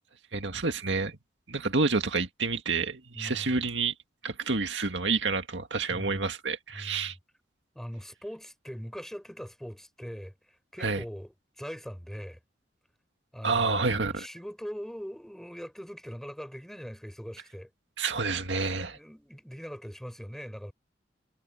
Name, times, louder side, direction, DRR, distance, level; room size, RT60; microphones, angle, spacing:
voice 1, 0.3-1.2 1.5-3.9 4.2-7.2 10.8-11.0 13.4-14.3 18.0-19.0, right 4 dB, 80° right, 2.1 m, -29 dB
voice 2, 3.1-3.6 5.9-6.4 6.7-7.1 7.7-12.4 13.3-17.7 18.9-20.7, equal, ahead, 6.0 m, -41 dB
head